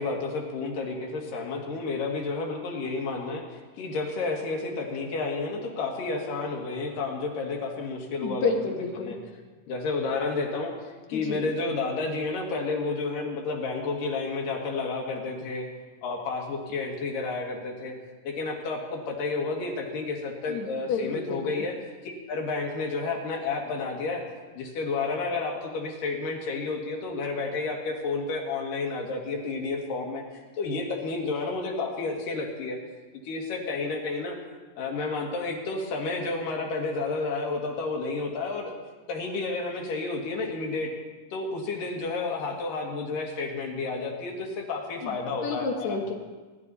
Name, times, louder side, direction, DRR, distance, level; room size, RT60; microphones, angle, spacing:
voice 1, 0.0-3.4 3.8-8.4 9.0-9.2 9.7-15.7 16.0-17.9 18.2-21.8 22.0-24.2 24.5-30.2 30.5-32.8 33.2-34.4 34.8-38.8 39.1-40.9 41.3-46.0, left 3 dB, 80° left, 0 dB, 3.4 m, -31 dB
voice 2, 8.2-9.2 11.1-11.5 20.5-21.7 45.0-46.1, left 4 dB, 65° left, 2 dB, 2.3 m, -31 dB
19.5 x 11.0 x 4.1 m, 1.3 s
omnidirectional pair, 3.8 m